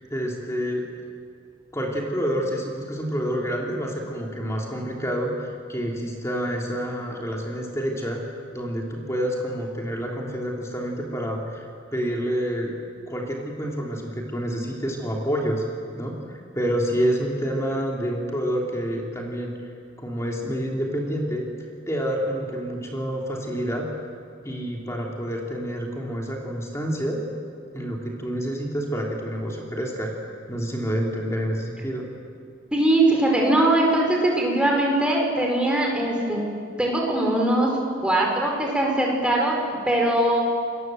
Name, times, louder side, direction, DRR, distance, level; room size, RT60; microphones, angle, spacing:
voice 1, 0.1-0.9 1.7-8.2 8.5-12.7 13.1-15.6 16.0-19.5 20.0-21.5 21.9-23.9 24.4-27.2 27.7-32.0, equal, 15° left, -1 dB, 3.2 m, -28 dB
voice 2, 32.7-36.4 36.8-37.7 38.0-40.4, right 1 dB, 5° right, -1 dB, 5.1 m, -21 dB
28.5 x 22.0 x 7.8 m, 2.3 s
head